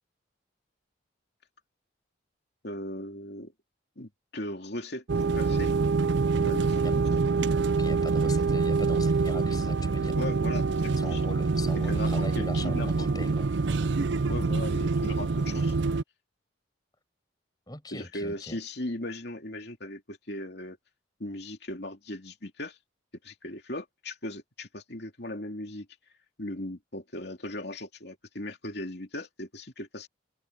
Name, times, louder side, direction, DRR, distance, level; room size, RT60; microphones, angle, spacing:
voice 1, 2.6-3.5 4.0-5.0 5.3-5.7 6.4-7.2 10.2-11.2 11.9-12.1 12.3-13.1 14.3-15.8 17.9-20.8 21.2-22.8 23.2-25.9 26.4-30.1, left 1 dB, 55° left, 3.0 m, -38 dB
sound 1, 5.1-16.0, right 4 dB, 65° right, 0.5 m, -26 dB
voice 2, 7.7-10.2 11.0-13.5 17.7-18.6, left 1 dB, 20° left, 6.5 m, -40 dB
open air
head